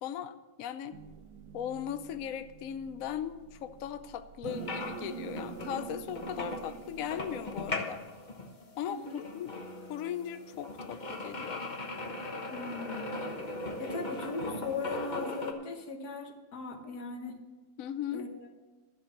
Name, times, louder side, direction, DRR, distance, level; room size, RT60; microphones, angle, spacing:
voice 1, 0.0-1.0 1.5-8.0 8.8-9.5 9.9-11.6 17.8-18.3, left 9 dB, 85° left, 11 dB, 0.7 m, -38 dB
sound 1, 0.9-7.7, right 8 dB, 70° right, 1.2 m, -46 dB
sound 2, 4.4-15.5, left 2 dB, 35° left, 0.8 m, -39 dB
voice 2, 8.9-9.3 12.5-13.2 13.8-17.4 18.1-18.5, left 3 dB, 55° left, 4 dB, 1.7 m, -39 dB
12.0 x 7.2 x 7.1 m, 1.2 s
omnidirectional pair, 2.2 m